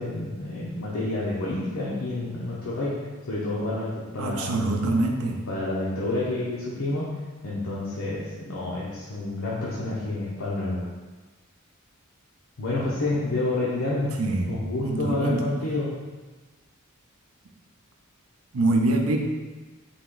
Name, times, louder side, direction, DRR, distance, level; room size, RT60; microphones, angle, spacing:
voice 1, 0.0-2.9 3.3-4.5 5.5-7.0 7.4-10.9 12.6-14.1 14.5-15.9, left 2 dB, 80° left, -8 dB, 0.8 m, -29 dB
voice 2, 4.2-5.4 14.2-15.4 18.5-19.2, right 2 dB, 75° right, 3 dB, 0.5 m, -25 dB
4.0 x 2.9 x 3.7 m, 1.3 s
head